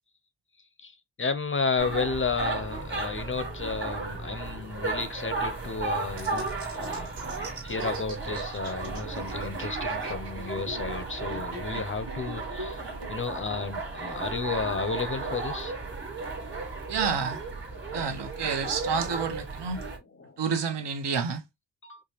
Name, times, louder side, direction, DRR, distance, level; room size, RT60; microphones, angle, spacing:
voice 1, 0.8-7.1 7.6-12.8 13.1-15.7 20.2-20.4 21.8-22.0, left 4 dB, 30° left, 0.4 m, -32 dB
sound 1, 1.8-20.0, right 3 dB, 25° right, 1.3 m, -34 dB
sound 2, 6.2-13.1, right 2 dB, 55° right, 1.2 m, -43 dB
voice 2, 16.9-17.4 17.9-19.9 20.4-21.4, right 6 dB, 75° right, 0.8 m, -29 dB
4.8 x 2.2 x 2.7 m
wide cardioid pair, 170°, 42 cm